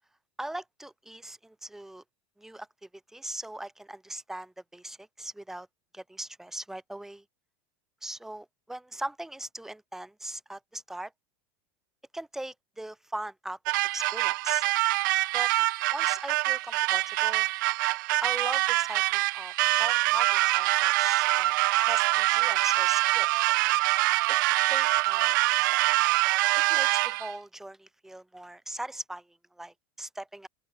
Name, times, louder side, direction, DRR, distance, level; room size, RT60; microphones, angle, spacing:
voice 1, 0.4-2.0 2.4-5.7 5.9-7.2 8.0-11.1 12.1-13.6 13.9-14.6 15.3-15.5 15.9-17.5 18.2-21.5 21.9-23.3 24.3-24.4 24.7-25.4 25.7-25.8 26.5-30.5, right 1 dB, 5° right, 4.9 m, -40 dB
sound 1, 13.7-27.3, right 21 dB, 65° right, 3.1 m, -25 dB
open air
supercardioid pair, 155°, 11 cm